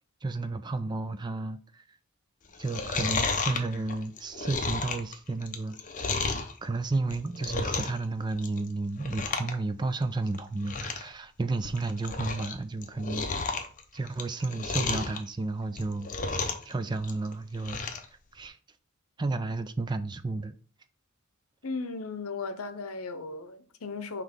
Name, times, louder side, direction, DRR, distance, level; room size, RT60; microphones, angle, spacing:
voice 1, 0.2-1.6 2.6-13.5 13.9-17.8 18.3-18.6 19.2-20.5, right 3 dB, 20° right, 0.3 m, -32 dB
Chewing mastication, 2.5-6.5 7.0-8.0 8.3-8.7 9.0-9.5 9.8-9.9 10.3-10.4 10.6-11.1 11.5-12.5 12.8-15.2 15.7-16.7 17.0-18.1 18.4-18.5, left 4 dB, 35° left, 0.7 m, -32 dB
voice 2, 21.6-24.2, left 4 dB, 80° left, 0.7 m, -36 dB
5.9 x 3.1 x 5.1 m
head